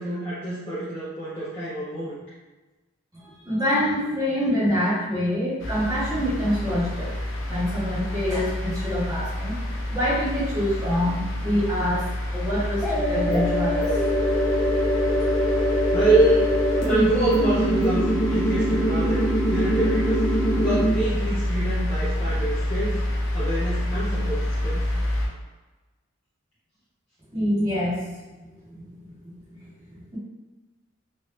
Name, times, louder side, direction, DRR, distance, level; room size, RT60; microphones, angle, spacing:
voice 1, 0.0-2.2 15.9-16.5 16.9-20.2 20.5-23.0 23.3-24.9, right 2 dB, 30° left, -12 dB, 0.8 m, -26 dB
voice 2, 3.2-7.1 7.4-9.5 9.9-12.0 12.3-14.0 15.1-15.3 27.3-28.1 28.4-28.5 28.9-29.1 29.6-30.2, equal, 15° right, -10 dB, 1.1 m, -26 dB
sound 1, 5.6-25.3, left 1 dB, 65° left, 0.7 m, -28 dB
sound 2, 12.8-20.8, equal, 5° left, 0.4 m, -23 dB
3.1 x 2.6 x 3.2 m, 1.2 s
head